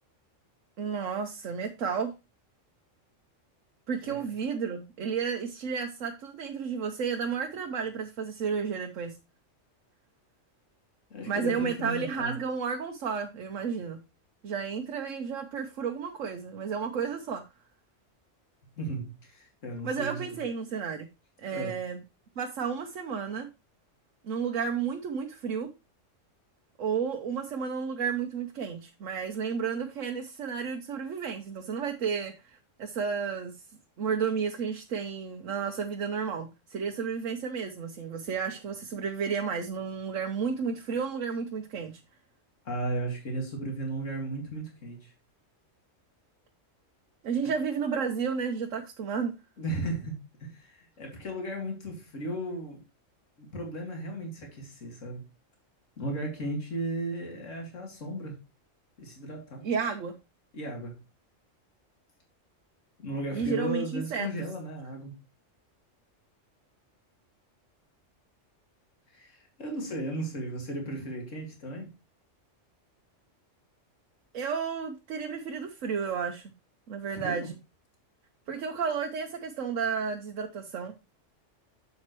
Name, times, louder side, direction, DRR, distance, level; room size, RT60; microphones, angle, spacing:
voice 1, 0.8-2.1 3.9-9.2 11.3-14.0 14.4-17.4 19.8-21.1 21.4-22.0 22.4-23.5 24.2-25.7 26.8-33.5 34.0-41.9 47.2-49.3 59.6-60.1 63.3-64.3 74.3-76.4 76.9-77.6 78.5-80.9, right 6 dB, 85° right, 1.2 m, -32 dB
voice 2, 4.0-4.3 11.1-12.3 18.8-20.4 21.5-21.8 42.6-45.1 47.4-47.5 49.6-52.8 53.4-55.3 56.0-58.4 59.0-59.7 60.5-61.0 63.0-65.2 69.1-71.9 77.1-77.5, right 1 dB, 75° left, 2.5 m, -35 dB
7.8 x 7.3 x 3.0 m
omnidirectional pair, 1.3 m